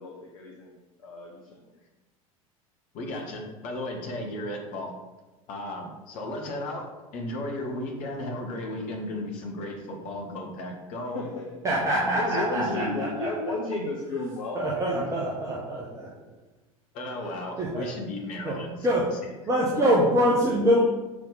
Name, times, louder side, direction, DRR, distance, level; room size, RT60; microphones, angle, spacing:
voice 1, 0.0-1.6 11.1-11.6 12.1-15.1 15.5-15.6, left 2 dB, 65° left, -1 dB, 1.1 m, -33 dB
voice 2, 2.9-4.9 5.5-11.2 11.9-13.0 16.9-19.1 19.7-19.9, left 1 dB, 45° left, 1 dB, 1.6 m, -35 dB
voice 3, 11.6-13.3 14.5-16.1 17.6-17.8 18.4-18.5 18.8-19.0 19.5-20.8, equal, 15° right, -5 dB, 1.3 m, -24 dB
6.9 x 4.8 x 4.1 m, 1.1 s
figure-of-eight pair, 80°, 18 cm